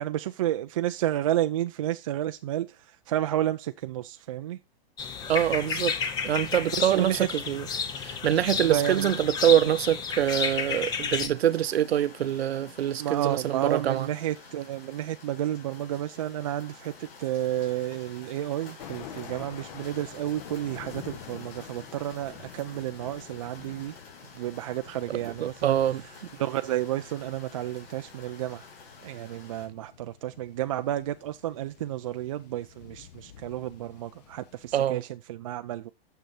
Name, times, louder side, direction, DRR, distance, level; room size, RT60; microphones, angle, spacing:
voice 1, 0.0-4.6 6.8-7.3 8.6-9.1 13.0-24.0 24.3-28.7 29.0-35.9, right 13 dB, 35° right, 0.4 m, -31 dB
sound 1, 5.0-11.3, left 6 dB, 15° left, 0.6 m, -31 dB
voice 2, 5.3-6.0 6.2-7.6 8.0-14.1 25.4-26.0 34.7-35.0, right 11 dB, 75° right, 0.8 m, -25 dB
sound 2, 11.3-29.7, left 4 dB, 65° left, 5.1 m, -49 dB
Thunder, 18.8-34.9, left 10 dB, 40° left, 1.1 m, -49 dB
9.0 x 6.8 x 4.2 m
hypercardioid pair, 145°, 32 cm